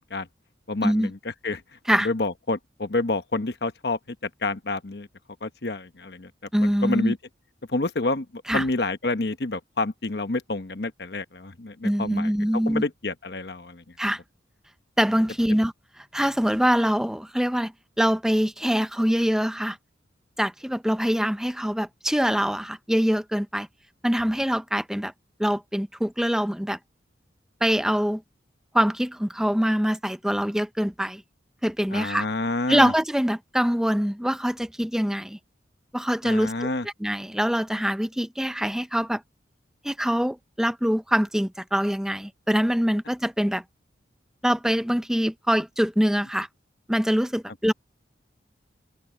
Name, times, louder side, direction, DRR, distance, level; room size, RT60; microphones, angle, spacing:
voice 1, 0.7-5.1 5.4-6.3 6.6-7.2 7.7-12.3 12.6-13.8 31.9-32.9 36.2-36.9, left 2 dB, 60° left, 1.1 m, -28 dB
voice 2, 6.5-7.1 8.5-8.6 11.8-12.8 14.0-14.2 15.0-15.7 16.1-19.8 20.4-23.7 24.0-25.1 25.4-26.8 27.6-28.2 28.7-31.2 31.6-32.2 32.7-35.4 35.9-36.7 37.0-39.2 39.8-43.6 44.4-46.5 46.9-47.7, equal, 5° right, 0.6 m, -24 dB
head